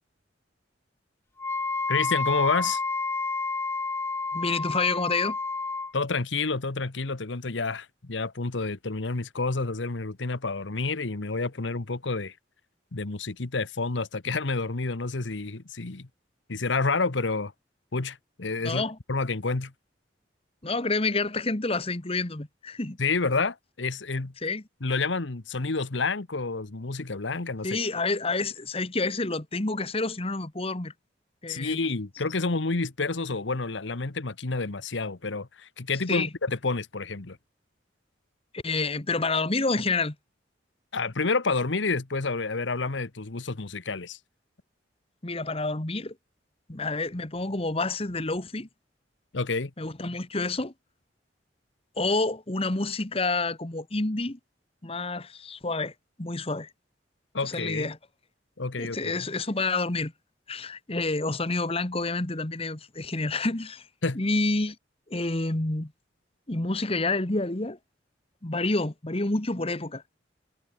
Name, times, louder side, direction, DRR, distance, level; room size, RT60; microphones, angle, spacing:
Wind instrument woodwind instrument, 1.4-5.9, left 3 dB, 15° left, 0.5 m, -29 dB
voice 1, 1.9-2.8 5.9-12.3 12.9-16.1 16.5-17.5 17.9-18.8 19.1-19.7 23.0-24.3 24.8-27.8 31.5-37.4 40.9-44.2 49.3-49.7 57.3-57.9 58.6-59.1 64.0-64.2, left 3 dB, 80° left, 1.2 m, -29 dB
voice 2, 4.3-5.4 18.6-19.0 20.6-23.0 24.4-24.6 27.6-30.9 31.4-31.8 36.1-36.3 38.5-40.1 45.2-46.1 46.7-48.7 49.8-50.7 52.0-54.4 54.8-55.9 56.2-56.7 57.4-58.0 58.8-60.1 60.5-63.9 64.1-64.8 65.1-65.9 66.5-67.8 68.4-70.0, left 3 dB, 30° left, 1.5 m, -28 dB
head